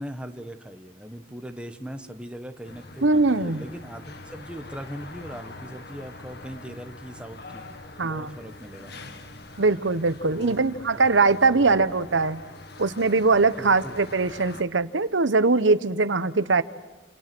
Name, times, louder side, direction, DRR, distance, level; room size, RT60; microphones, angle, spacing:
voice 1, 0.0-7.6 8.0-8.9 10.3-10.6 10.9-11.1 11.5-11.9 13.6-14.0, equal, 5° right, 7 dB, 1.3 m, -39 dB
sound 1, 2.6-14.6, left 2 dB, 60° left, 2.0 m, -44 dB
voice 2, 3.0-3.6 8.0-8.3 9.6-12.4 12.8-16.6, right 3 dB, 80° right, 14 dB, 1.0 m, -21 dB
29.5 x 27.5 x 6.2 m, 1.1 s
head